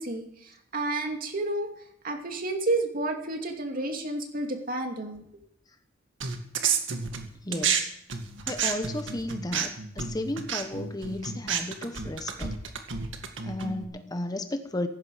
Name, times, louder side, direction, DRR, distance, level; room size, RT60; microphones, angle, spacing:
voice 1, 0.0-1.7 2.0-5.2, right 2 dB, 45° right, 3 dB, 2.5 m, -30 dB
sound 1, 6.2-7.8 8.1-13.8, right 7 dB, 70° right, 2.1 m, -30 dB
voice 2, 7.4-7.9 8.4-12.6 13.4-14.9, left 1 dB, 20° left, 8 dB, 1.0 m, -34 dB
17.0 x 15.0 x 5.0 m, 0.74 s
head